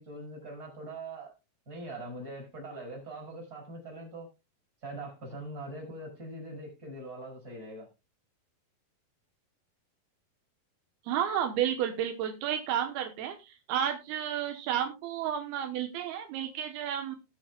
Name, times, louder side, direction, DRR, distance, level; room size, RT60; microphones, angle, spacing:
voice 1, 0.0-1.3 1.7-4.3 4.8-7.9, right 1 dB, 20° right, 6.1 m, -42 dB
voice 2, 11.1-17.2, right 10 dB, 80° right, 3.0 m, -31 dB
20.0 x 7.4 x 2.3 m
omnidirectional pair, 4.4 m